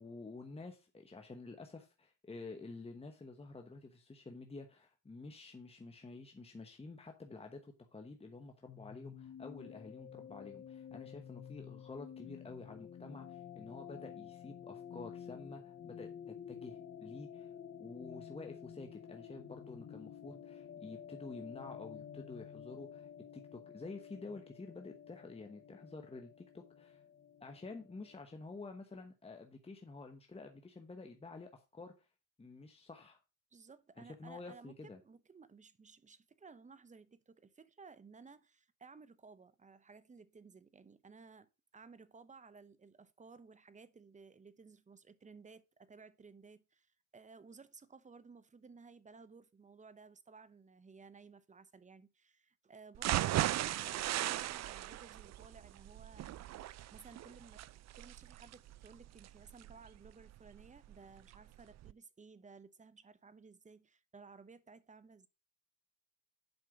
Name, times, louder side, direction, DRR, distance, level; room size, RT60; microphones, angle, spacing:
voice 1, 0.0-17.5 17.8-27.0 27.4-32.1 32.4-33.2 34.0-35.0, left 3 dB, 20° left, 1.2 m, -50 dB
sound 1, 8.7-28.2, left 8 dB, 45° left, 0.7 m, -51 dB
voice 2, 33.5-56.4 56.9-65.3, right 4 dB, 25° right, 0.9 m, -57 dB
sound 2, 52.9-60.9 61.3-61.4 61.8-61.9, right 14 dB, 60° right, 0.5 m, -37 dB
8.0 x 5.4 x 5.2 m
cardioid pair, 90°, 30 cm